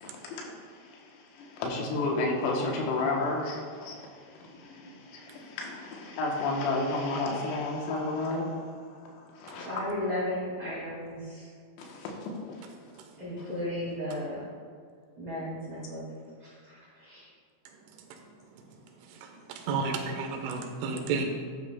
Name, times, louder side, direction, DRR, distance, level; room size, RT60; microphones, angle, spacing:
voice 1, 0.0-9.7 11.8-12.7 19.7-19.8, left 2 dB, 85° left, -1 dB, 3.7 m, -32 dB
voice 2, 9.6-11.5 13.2-14.5 15.2-16.1 16.4-17.3, left 1 dB, 35° right, -11 dB, 2.6 m, -35 dB
voice 3, 19.2-21.3, right 4 dB, 80° right, 4 dB, 3.3 m, -32 dB
11.5 x 10.0 x 2.2 m, 2.1 s
omnidirectional pair, 5.8 m